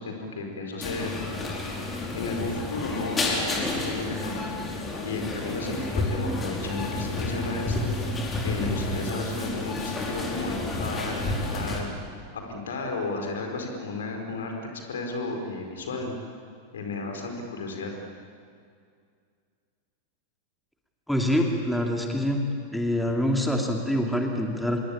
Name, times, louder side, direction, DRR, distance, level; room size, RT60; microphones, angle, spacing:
voice 1, 0.0-1.6 2.1-4.4 5.0-7.9 8.4-11.9 12.3-16.1 16.7-17.9, left 3 dB, 65° left, 3 dB, 4.8 m, -33 dB
sound 1, 0.8-11.8, left 2 dB, 20° left, 4.9 m, -30 dB
voice 2, 21.1-22.5 22.7-24.8, equal, ahead, 1 dB, 2.5 m, -25 dB
26.0 x 22.0 x 8.7 m, 2.2 s
figure-of-eight pair, 90°, 0 cm